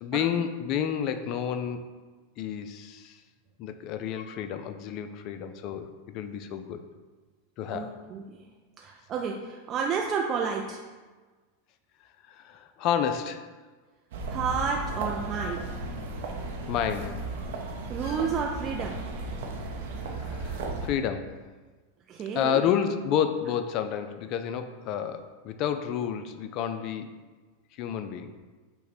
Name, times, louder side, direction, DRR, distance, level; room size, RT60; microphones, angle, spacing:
voice 1, 0.0-1.9 2.4-3.2 3.6-6.8 7.6-7.9 12.3-13.5 16.7-17.2 18.0-18.2 20.1-21.3 22.3-27.1 27.7-28.4, left 8 dB, 50° left, 9 dB, 0.3 m, -30 dB
voice 2, 7.7-8.4 8.8-10.8 14.3-15.7 17.9-19.0 22.1-22.6, right 6 dB, 35° right, 1 dB, 0.4 m, -31 dB
sound 1, 14.1-20.9, right 2 dB, 70° right, 0.7 m, -35 dB
5.5 x 2.1 x 4.1 m, 1.4 s
hypercardioid pair, 110°, 0 cm